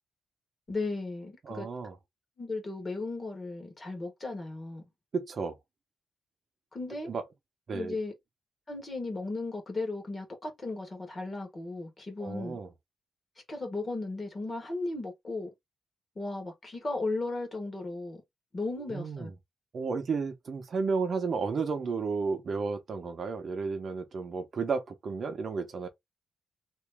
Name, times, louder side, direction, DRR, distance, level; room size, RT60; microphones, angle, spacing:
voice 1, 0.7-1.7 2.4-4.8 6.7-7.1 7.7-8.1 8.7-12.6 13.5-15.5 16.1-18.2 18.5-19.3, left 3 dB, 25° left, 1.4 m, -35 dB
voice 2, 1.4-1.9 5.1-5.6 7.1-7.2 7.7-8.0 12.2-12.7 18.9-19.3 19.7-25.9, right 4 dB, 45° right, 0.7 m, -32 dB
3.0 x 2.6 x 3.4 m
wide cardioid pair, 150°, 0 cm